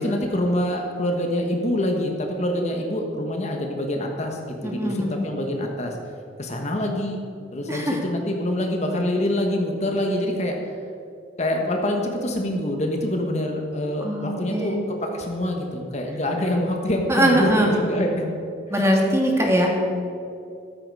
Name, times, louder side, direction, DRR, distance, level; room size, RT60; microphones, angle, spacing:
voice 1, 0.0-6.0 6.4-7.2 7.5-10.6 11.4-18.3 19.4-19.5, left 1 dB, 35° left, 2 dB, 1.4 m, -25 dB
voice 2, 4.6-5.3 7.7-8.0 14.0-14.8 17.1-17.7 18.7-19.7, equal, 15° right, 0 dB, 2.0 m, -21 dB
13.5 x 13.5 x 4.9 m, 2.6 s
head